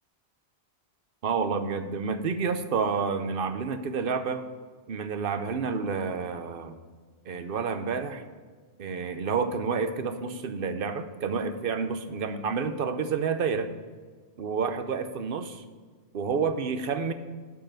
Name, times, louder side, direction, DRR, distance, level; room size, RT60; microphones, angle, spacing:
voice 1, 1.2-4.5 4.9-6.8 7.3-8.2 8.8-13.7 14.4-15.6 16.1-17.1, right 5 dB, 60° right, 9 dB, 0.9 m, -29 dB
8.7 x 5.6 x 7.7 m, 1.5 s
omnidirectional pair, 1.1 m